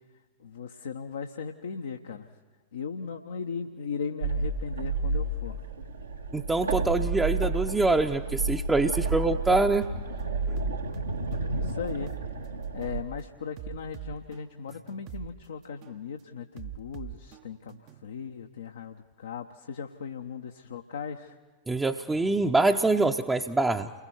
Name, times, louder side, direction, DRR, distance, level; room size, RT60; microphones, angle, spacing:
voice 1, 0.4-2.4 2.7-5.6 11.5-12.1 12.4-21.4, left 6 dB, 65° left, 4 dB, 1.0 m, -38 dB
sound 1, 4.2-13.0, right 3 dB, 80° right, 1.7 m, -31 dB
voice 2, 6.3-9.9 10.5-10.6 21.7-23.9, right 2 dB, 10° right, 3 dB, 0.8 m, -25 dB
sound 2, 9.1-9.3 9.8-10.0 10.6-12.3 12.8-13.0 13.6-15.3 15.8-16.0 16.6-18.1, right 12 dB, 40° right, 0.9 m, -42 dB
29.5 x 22.0 x 4.7 m, 1.4 s
figure-of-eight pair, 90°, 0 cm